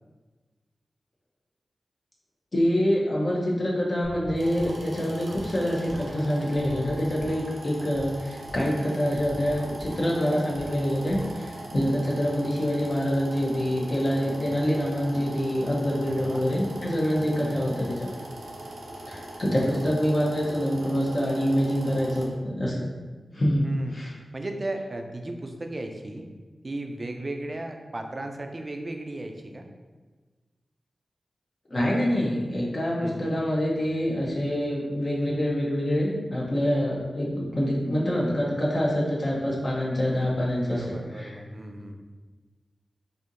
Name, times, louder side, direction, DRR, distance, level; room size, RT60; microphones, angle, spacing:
voice 1, 2.5-18.1 19.1-22.9 23.3-24.1 31.7-40.8 41.1-41.3, equal, 45° left, -5 dB, 0.7 m, -26 dB
sound 1, 4.0-11.9, equal, 65° left, 1.1 m, -43 dB
sound 2, 4.4-22.3, right 1 dB, 90° right, 0.6 m, -41 dB
voice 2, 14.2-14.6 16.1-16.5 17.2-17.5 19.7-19.9 23.6-24.0 24.3-26.3 26.6-29.7 33.0-33.3 40.6-42.0, right 1 dB, 35° right, 4 dB, 0.4 m, -36 dB
4.3 x 2.7 x 2.5 m, 1.3 s
wide cardioid pair, 85°, 0 cm